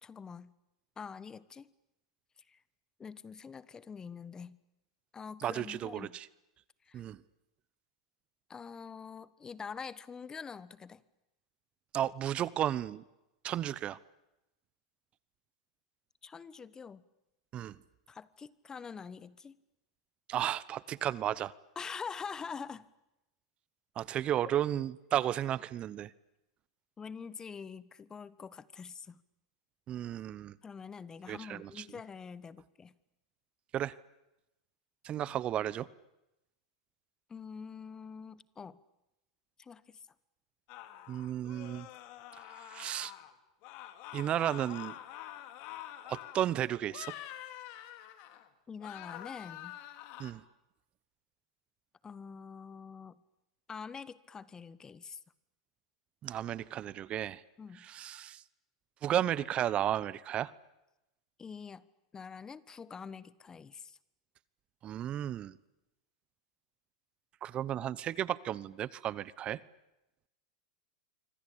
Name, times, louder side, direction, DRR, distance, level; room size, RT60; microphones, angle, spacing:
voice 1, 0.0-0.6 1.0-1.7 2.5-2.6 3.0-4.6 5.1-6.2 6.8-7.0 8.5-11.0 16.2-17.0 18.1-19.6 21.7-22.9 27.0-29.2 30.6-32.9 37.3-38.8 39.6-40.0 48.7-49.8 52.0-53.2 53.7-55.2 57.6-57.9 61.4-61.9 62.1-64.0, left 6 dB, 20° left, 18 dB, 1.2 m, -45 dB
voice 2, 5.4-6.3 6.9-7.2 11.9-13.0 13.4-14.0 17.5-17.7 20.3-21.5 24.0-26.1 29.9-30.6 31.3-31.8 33.7-33.9 35.0-35.9 41.1-41.9 42.5-43.1 44.1-44.9 46.1-47.1 50.2-50.4 56.2-57.4 57.8-58.4 59.0-60.5 64.8-65.6 67.4-69.6, right 11 dB, 35° right, 20 dB, 0.9 m, -33 dB
sound 1, 40.7-43.3 43.6-46.5 46.9-48.5 48.8-50.3, left 13 dB, 55° left, 3.2 m, -47 dB
26.5 x 25.5 x 8.7 m, 0.93 s
hypercardioid pair, 110°, 3 cm